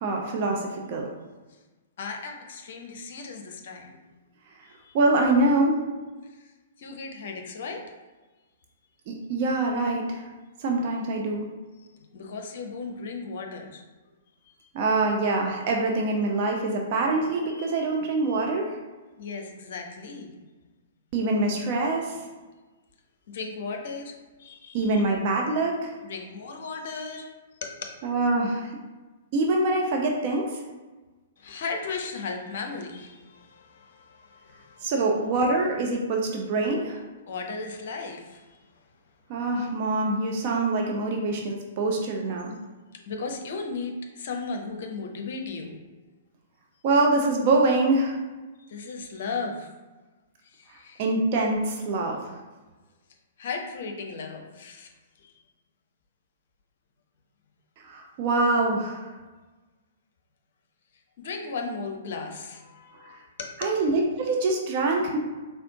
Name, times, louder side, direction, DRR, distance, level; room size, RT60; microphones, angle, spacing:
voice 1, 0.0-1.1 4.9-5.8 9.1-10.2 10.6-11.5 14.7-18.8 21.1-22.1 24.7-25.9 28.0-28.7 29.3-30.5 34.8-37.0 39.3-42.5 46.8-48.2 51.0-52.2 57.8-59.1 63.6-65.2, right 2 dB, 40° right, 1 dB, 0.5 m, -24 dB
voice 2, 2.0-4.0 4.7-4.9 6.4-6.5 6.8-8.0 11.8-11.9 12.1-13.8 14.4-14.7 17.5-17.8 18.2-18.4 19.2-20.3 23.3-25.0 26.0-27.3 27.6-27.7 31.4-34.9 37.3-38.6 43.1-45.7 48.7-49.7 50.5-51.0 53.4-54.9 55.2-55.3 61.2-63.7, left 4 dB, 50° left, 3 dB, 0.6 m, -36 dB
4.2 x 3.4 x 2.7 m, 1.2 s
figure-of-eight pair, 115°, 0 cm